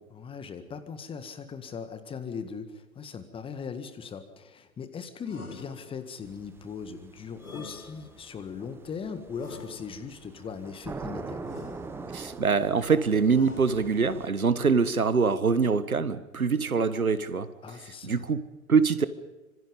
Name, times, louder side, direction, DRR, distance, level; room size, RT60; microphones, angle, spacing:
voice 1, 0.1-11.4 17.6-18.3, left 6 dB, 10° left, 10 dB, 1.7 m, -39 dB
sound 1, 5.3-6.3 7.4-8.4 9.3-10.3 11.4-12.3 13.3-14.2, left 3 dB, 80° left, 2.2 m, -46 dB
sound 2, 6.2-14.3, right 4 dB, 5° right, 0.9 m, -43 dB
voice 2, 12.1-17.5 18.0-19.1, right 5 dB, 75° right, 14 dB, 1.6 m, -24 dB
26.0 x 25.0 x 5.3 m, 1.2 s
figure-of-eight pair, 115°, 43 cm